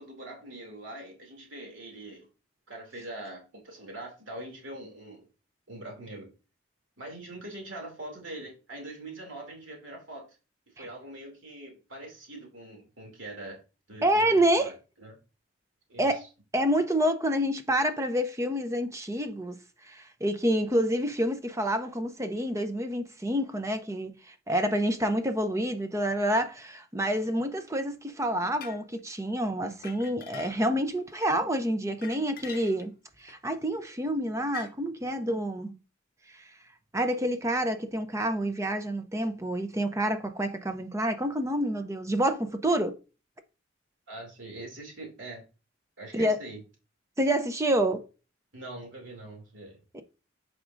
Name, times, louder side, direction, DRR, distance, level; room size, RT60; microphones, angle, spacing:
voice 1, 0.0-2.3 2.7-5.3 5.7-6.3 7.0-10.3 10.8-13.6 13.9-14.7 15.0-15.2 15.9-16.3 44.1-45.4 46.0-46.6 48.5-49.8, right 1 dB, 80° right, 2.6 m, -43 dB
voice 2, 14.0-14.7 16.0-16.2 16.5-19.6 19.9-32.9 33.2-35.7 36.9-43.0 46.1-46.4 47.2-48.0 49.9-50.0, right 1 dB, 15° right, 0.6 m, -28 dB
sound 1, 28.6-28.8 29.6-30.8 31.1-31.3 31.9-32.9 33.3-33.5 34.5-34.7, left 8 dB, 50° left, 0.8 m, -44 dB
9.4 x 4.9 x 2.6 m
head